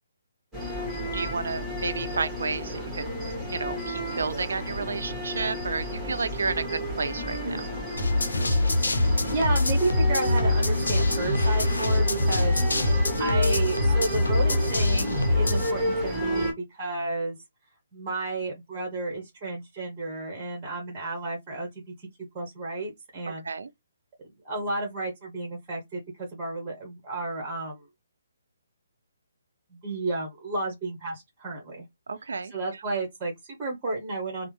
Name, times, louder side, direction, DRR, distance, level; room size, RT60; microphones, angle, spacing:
sound 1, 0.5-16.5, right 1 dB, 5° right, 1.4 m, -32 dB
voice 1, 1.1-7.6 23.4-23.7 32.1-32.5, right 4 dB, 65° right, 0.5 m, -31 dB
sound 2, 8.0-15.7, left 2 dB, 75° left, 0.7 m, -24 dB
voice 2, 9.2-12.5 13.2-17.4 17.9-21.7 22.3-23.4 24.4-27.8 29.7-31.8 32.5-34.5, right 2 dB, 20° right, 1.1 m, -32 dB
3.3 x 2.0 x 3.1 m
figure-of-eight pair, 135°, 0 cm